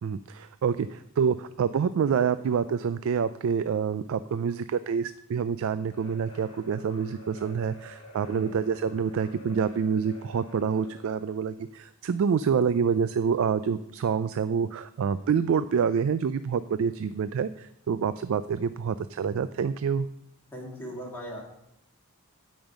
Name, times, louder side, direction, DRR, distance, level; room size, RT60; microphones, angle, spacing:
voice 1, 0.0-20.1, right 6 dB, 60° right, 13 dB, 0.3 m, -27 dB
sound 1, 5.9-11.3, equal, 25° left, 3.1 m, -49 dB
voice 2, 8.2-8.5 20.5-21.4, equal, 10° left, -5 dB, 2.9 m, -39 dB
8.9 x 5.3 x 7.1 m, 0.79 s
head